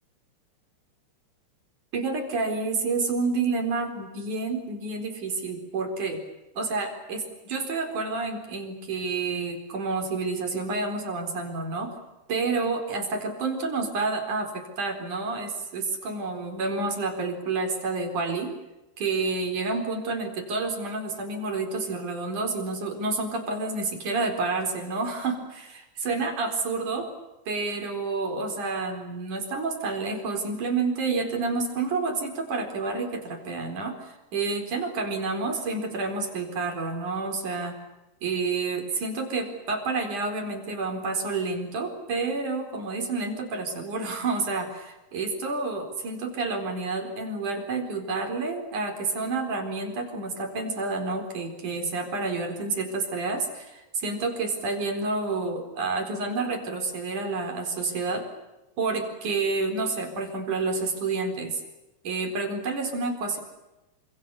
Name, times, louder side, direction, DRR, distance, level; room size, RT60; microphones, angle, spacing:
voice 1, 1.9-6.2 6.6-12.0 12.3-18.5 19.0-27.1 27.5-37.8 38.2-58.3 58.8-61.6 62.0-63.4, right 3 dB, 70° right, 5 dB, 5.7 m, -29 dB
28.5 x 27.0 x 6.9 m, 1.0 s
omnidirectional pair, 3.7 m